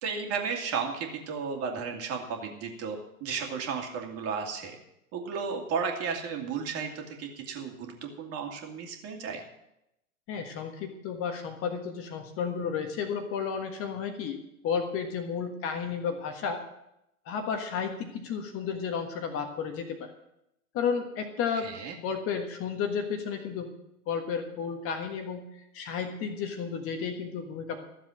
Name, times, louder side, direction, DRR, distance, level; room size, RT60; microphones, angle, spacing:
voice 1, 0.0-4.8 5.1-9.4 21.6-22.0, right 6 dB, 30° right, 2 dB, 2.5 m, -34 dB
voice 2, 10.3-16.6 17.2-20.1 20.7-21.7 22.0-23.8 24.1-25.5 25.7-27.8, left 6 dB, 30° left, 5 dB, 1.5 m, -32 dB
14.0 x 7.4 x 7.7 m, 0.85 s
figure-of-eight pair, 105°, 45 cm